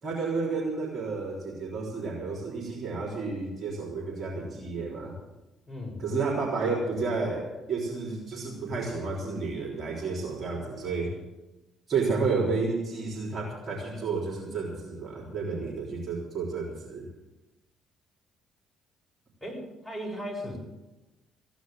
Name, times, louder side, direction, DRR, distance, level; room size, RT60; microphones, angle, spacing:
voice 1, 0.0-5.2 6.0-11.2 11.9-17.1, right 4 dB, 40° right, -3 dB, 3.8 m, -31 dB
voice 2, 5.7-6.0 19.4-20.6, equal, 5° left, -2 dB, 7.4 m, -36 dB
15.5 x 10.5 x 7.7 m, 1.0 s
figure-of-eight pair, 45°, 0 cm